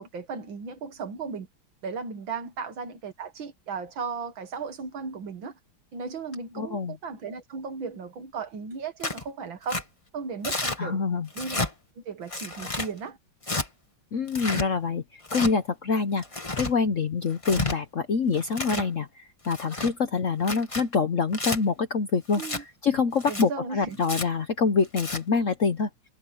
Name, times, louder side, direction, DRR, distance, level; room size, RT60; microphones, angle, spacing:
voice 1, 0.0-1.5 1.8-5.5 5.9-9.8 10.1-11.0 11.4-11.7 12.0-13.2 22.4-22.6 23.3-24.0, right 5 dB, 70° right, 2.4 m, -36 dB
voice 2, 6.6-7.0 10.8-11.3 14.1-16.2 16.6-25.9, left 5 dB, 50° left, 1.0 m, -26 dB
Tearing, 9.0-9.2 9.7-9.8 10.4-10.8 11.3-11.7 12.3-12.9 13.4-13.7 14.3-14.7 15.2-15.5 16.2-16.7 17.3-17.8 18.3-18.9 19.4-19.9 20.4-20.8 21.3-21.6 22.3-22.6 23.2-23.4 24.0-24.3 24.8-25.2, left 2 dB, 15° left, 1.6 m, -31 dB
omnidirectional pair, 2.3 m